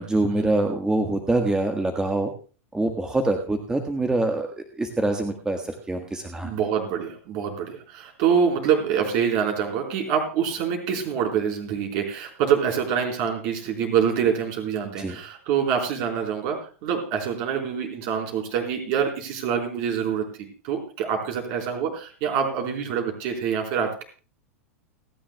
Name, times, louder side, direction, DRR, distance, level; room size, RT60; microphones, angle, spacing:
voice 1, 0.0-2.3 2.7-6.5 15.0-15.2, right 2 dB, 10° right, 5 dB, 1.5 m, -25 dB
voice 2, 6.4-24.0, right 7 dB, 50° right, 2 dB, 4.3 m, -25 dB
30.0 x 10.0 x 2.3 m, 0.37 s
hypercardioid pair, 100°, 8 cm